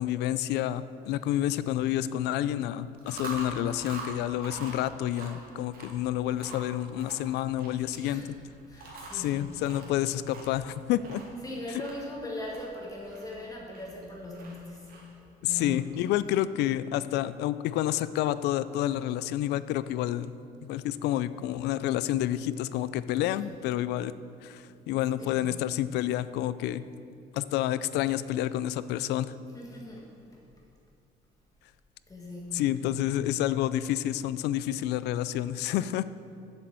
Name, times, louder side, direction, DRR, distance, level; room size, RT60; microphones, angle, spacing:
voice 1, 0.0-8.4 9.1-11.2 15.4-20.3 20.6-24.1 24.4-26.8 27.3-29.3 32.5-36.0, left 13 dB, 80° left, 15 dB, 0.4 m, -29 dB
Chewing mastication, 2.9-16.1, right 3 dB, 60° right, 2.3 m, -45 dB
voice 2, 8.7-9.6 11.4-14.9 15.5-15.9 23.3-23.4 25.2-25.5 29.5-30.4 32.1-32.6, left 1 dB, 20° left, -2 dB, 1.7 m, -40 dB
7.6 x 7.0 x 7.7 m, 2.4 s
cardioid pair, 110°, 17 cm